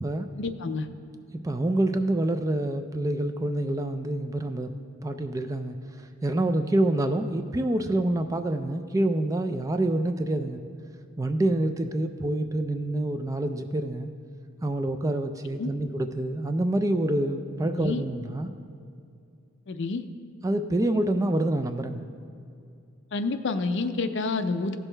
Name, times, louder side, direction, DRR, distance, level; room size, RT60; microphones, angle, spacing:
voice 1, 0.3-0.9 15.6-15.7 17.8-18.0 19.7-20.0 23.1-24.8, left 3 dB, 60° left, 9 dB, 0.5 m, -28 dB
voice 2, 1.3-4.7 5.0-10.6 11.2-14.1 14.6-18.5 20.4-22.0, right 1 dB, 15° right, 8 dB, 0.3 m, -27 dB
15.5 x 6.3 x 3.3 m, 2.4 s
head